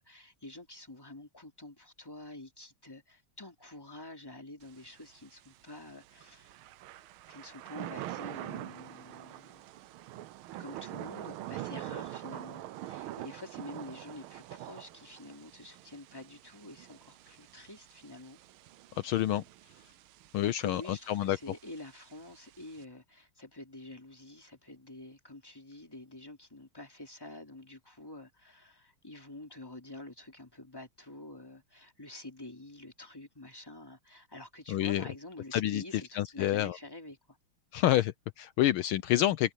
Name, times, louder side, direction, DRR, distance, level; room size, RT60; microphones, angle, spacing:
voice 1, 0.0-6.6 7.3-9.6 10.6-18.4 20.4-37.4, left 2 dB, 10° left, 3.2 m, -48 dB
Thunder / Rain, 4.6-22.9, right 14 dB, 80° right, 1.5 m, -45 dB
voice 2, 18.9-19.4 20.3-21.4 34.7-35.0 35.5-35.8 36.1-36.8 37.7-39.5, left 13 dB, 75° left, 1.5 m, -28 dB
omnidirectional pair, 2.4 m